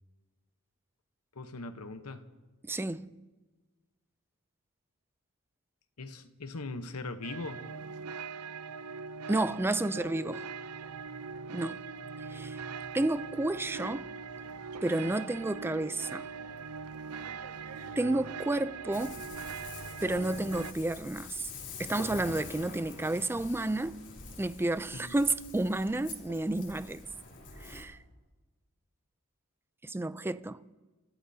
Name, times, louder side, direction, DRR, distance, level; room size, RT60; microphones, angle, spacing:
voice 1, 1.3-2.3 6.0-7.6 24.9-25.1, left 3 dB, 85° left, 1.0 m, -40 dB
voice 2, 2.6-3.1 9.3-10.4 11.5-11.8 12.2-12.6 12.9-14.1 14.8-16.3 18.0-19.2 20.0-21.5 21.8-24.0 24.4-27.0 27.6-28.0 29.8-30.6, right 2 dB, 10° right, 0.4 m, -31 dB
sound 1, 7.2-20.7, right 5 dB, 85° right, 0.6 m, -41 dB
sound 2, 9.3-21.0, equal, 60° right, 3.6 m, -53 dB
Ocean, 18.9-27.8, left 4 dB, 55° left, 3.4 m, -46 dB
29.0 x 14.5 x 2.8 m
head